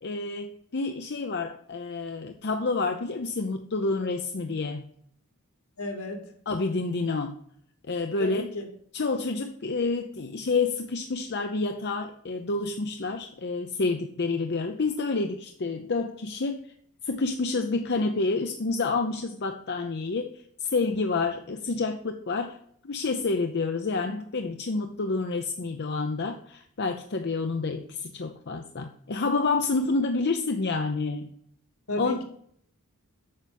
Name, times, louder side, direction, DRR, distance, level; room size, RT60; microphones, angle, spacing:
voice 1, 0.0-4.9 6.5-7.4 7.9-8.4 8.9-16.7 17.0-20.3 20.6-22.6 22.8-31.3 32.0-32.2, left 3 dB, 50° left, 6 dB, 0.7 m, -28 dB
voice 2, 5.8-6.2 8.2-8.7 31.9-32.2, left 1 dB, 75° left, 3 dB, 2.7 m, -32 dB
8.7 x 6.1 x 5.3 m, 0.66 s
head